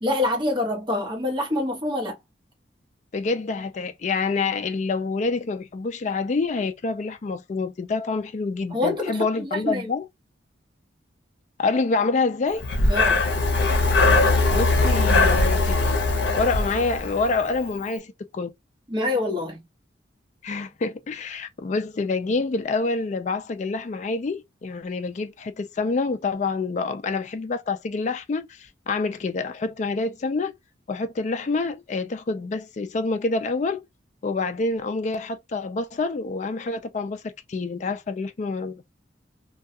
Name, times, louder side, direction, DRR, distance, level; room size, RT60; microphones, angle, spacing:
voice 1, 0.0-2.2 8.7-9.9 12.9-13.2 18.9-19.6, left 2 dB, 25° right, 0.9 m, -26 dB
voice 2, 3.1-10.1 11.6-12.7 14.5-15.8 16.3-18.5 20.4-30.5 30.9-33.8 34.2-38.8, left 3 dB, 40° left, 0.3 m, -27 dB
Breathing, 12.6-17.5, left 3 dB, 65° left, 0.7 m, -20 dB
2.3 x 2.2 x 2.6 m
head